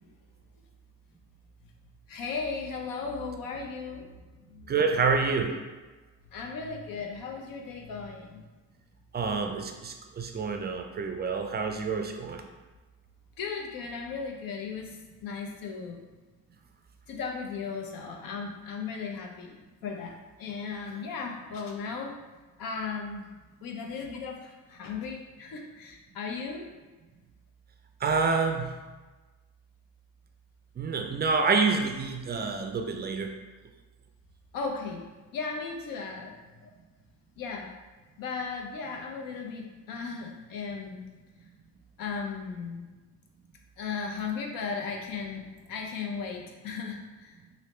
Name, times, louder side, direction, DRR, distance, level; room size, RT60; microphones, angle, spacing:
voice 1, 2.1-4.1 4.5-4.7 6.3-8.4 13.4-16.0 17.1-19.6 19.8-22.1 22.6-23.3 23.6-26.7 34.5-35.0 35.3-36.7 37.4-37.7 38.2-41.1 42.0-42.9 43.8-47.4, left 5 dB, 80° left, 1 dB, 0.6 m, -36 dB
voice 2, 4.7-5.5 9.1-12.4 28.0-28.7 30.8-33.3, right 4 dB, 30° right, 5 dB, 0.4 m, -27 dB
3.1 x 2.6 x 3.0 m, 1.2 s
cardioid pair, 95°, 33 cm